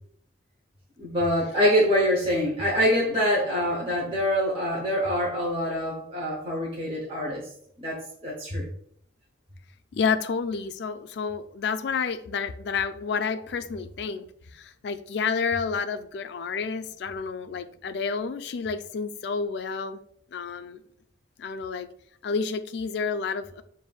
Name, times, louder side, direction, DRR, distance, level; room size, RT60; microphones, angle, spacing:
voice 1, 1.0-7.5 7.8-8.7, equal, 30° right, -4 dB, 0.8 m, -25 dB
voice 2, 9.9-14.3 14.5-20.0 20.3-20.8 21.4-21.9 22.2-23.6, left 5 dB, 60° left, 10 dB, 0.3 m, -30 dB
7.0 x 2.6 x 2.3 m, 0.67 s
head